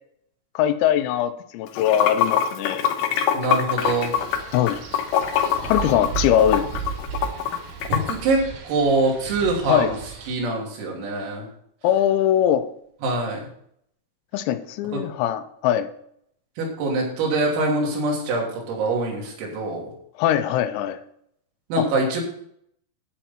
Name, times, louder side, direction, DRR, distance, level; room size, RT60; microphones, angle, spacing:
voice 1, 0.6-2.9 4.5-4.8 5.6-6.7 9.7-9.9 11.8-12.7 14.3-15.9 20.2-21.0 21.8-21.9, left 10 dB, 90° left, 10 dB, 3.6 m, -21 dB
Water / Sink (filling or washing), 1.7-8.1, left 9 dB, 75° left, 3.0 m, -23 dB
voice 2, 3.3-4.1 7.9-10.0 10.3-11.5 13.0-13.4 16.6-19.9 21.7-22.2, right 2 dB, 85° right, -1 dB, 5.7 m, -24 dB
Wind, 3.8-10.3, right 7 dB, 60° right, 3.2 m, -35 dB
11.5 x 9.2 x 4.4 m, 0.69 s
omnidirectional pair, 5.9 m